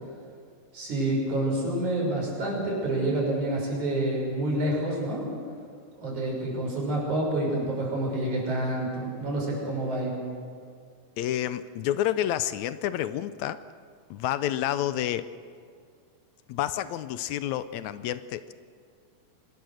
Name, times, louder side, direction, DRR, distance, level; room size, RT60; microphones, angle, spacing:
voice 1, 0.7-5.3 6.0-10.1, right 1 dB, 80° right, -2 dB, 7.6 m, -28 dB
voice 2, 11.2-13.6 14.1-15.3 16.5-18.5, left 12 dB, 80° left, 13 dB, 1.9 m, -29 dB
26.0 x 20.5 x 6.5 m, 2.1 s
omnidirectional pair, 3.4 m